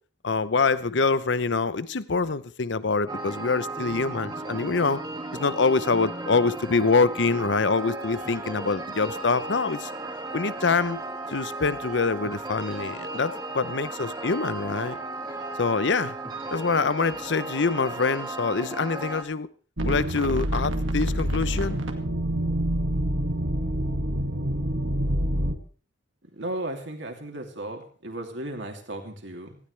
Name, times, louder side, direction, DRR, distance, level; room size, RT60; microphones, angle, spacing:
voice 1, 0.2-5.0 5.3-9.9 10.3-11.0 11.3-15.0 15.6-16.2 16.5-19.5 19.8-21.8, left 4 dB, 65° left, 16 dB, 0.8 m, -25 dB
sound 1, 3.1-19.2, right 2 dB, 20° right, 2.1 m, -35 dB
sound 2, 19.8-25.5, right 1 dB, 90° right, 2.0 m, -26 dB
voice 2, 26.3-29.6, right 1 dB, 70° right, 3 dB, 2.9 m, -35 dB
18.5 x 16.0 x 3.4 m, 0.41 s
head